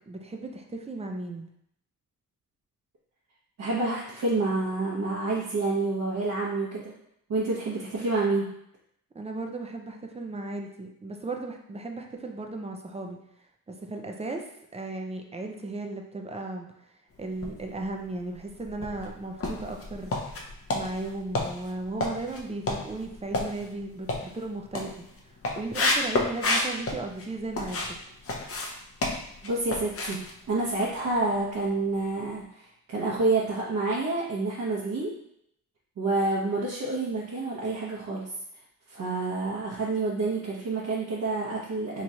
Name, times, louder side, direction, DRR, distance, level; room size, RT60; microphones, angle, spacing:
voice 1, 0.1-1.5 9.1-13.2 13.7-14.5 14.7-16.7 17.2-20.2 20.7-24.9 25.5-27.9, right 2 dB, 20° right, 3 dB, 0.5 m, -36 dB
voice 2, 3.6-6.9 7.3-8.4 29.4-30.2 30.5-32.4 32.9-35.1 36.0-38.2 38.9-42.0, right 3 dB, 55° right, -7 dB, 1.0 m, -28 dB
sound 1, 17.3-18.0 18.5-28.0 28.2-31.4 31.7-31.9 32.3-32.4, left 2 dB, 40° left, 0.7 m, -31 dB
3.1 x 2.5 x 4.2 m, 0.74 s
cardioid pair, 80°, 36 cm